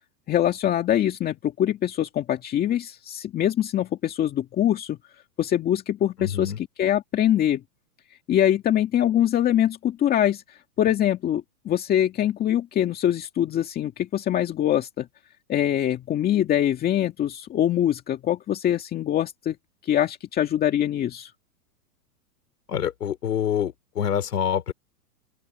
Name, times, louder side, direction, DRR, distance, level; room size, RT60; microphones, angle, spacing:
voice 1, 0.3-5.0 5.4-6.5 6.8-7.6 8.3-15.1 15.5-19.6 19.8-21.3, left 11 dB, 20° left, 2.1 m, -23 dB
voice 2, 6.2-6.6 22.7-24.7, left 9 dB, 85° left, 4.7 m, -26 dB
open air
hypercardioid pair, 145°, 46 cm